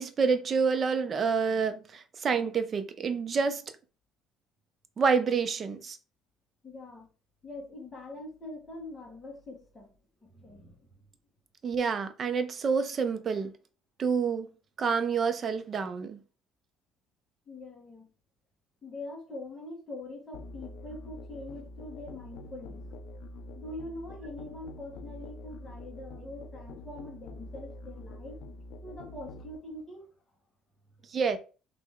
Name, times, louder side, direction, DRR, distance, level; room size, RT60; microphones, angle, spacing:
voice 1, 0.0-3.6 5.0-6.0 11.6-13.5 14.0-14.5 14.8-16.2 31.1-31.4, right 5 dB, 30° right, 0.5 m, -28 dB
voice 2, 6.6-7.1 7.4-9.9 10.2-11.0 17.5-18.1 18.8-22.8 23.5-28.4 28.8-30.1, left 2 dB, 20° left, 1.3 m, -43 dB
Musical instrument, 20.3-29.6, left 1 dB, 70° left, 0.4 m, -45 dB
3.2 x 2.9 x 3.6 m
cardioid pair, 155°, 0 cm